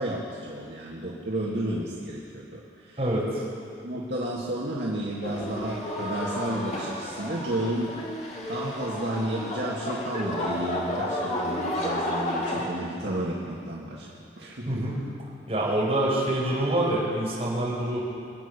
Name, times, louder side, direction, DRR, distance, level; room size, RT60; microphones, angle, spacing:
voice 1, 0.0-3.0 3.8-7.9 8.5-14.1 14.4-14.9, right 1 dB, 70° right, -5 dB, 1.9 m, -32 dB
voice 2, 3.0-3.4 14.7-15.0 15.5-18.0, right 1 dB, 35° right, -6 dB, 4.9 m, -26 dB
sound 1, 5.2-12.7, left 1 dB, 35° left, 2.2 m, -32 dB
23.5 x 8.9 x 6.7 m, 2.6 s
head